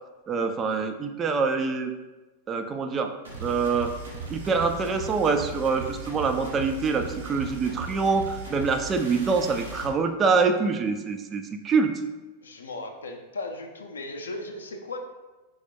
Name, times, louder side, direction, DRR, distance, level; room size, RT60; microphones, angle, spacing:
voice 1, 0.3-1.9 2.5-3.1 3.4-3.9 4.3-12.0, right 4 dB, 25° right, 6 dB, 0.3 m, -25 dB
sound 1, 3.2-9.9, right 3 dB, 70° right, 0.8 m, -38 dB
voice 2, 12.4-15.0, left 2 dB, 70° left, 4 dB, 0.5 m, -36 dB
4.2 x 2.3 x 4.3 m, 1.1 s
figure-of-eight pair, 90°, 0 cm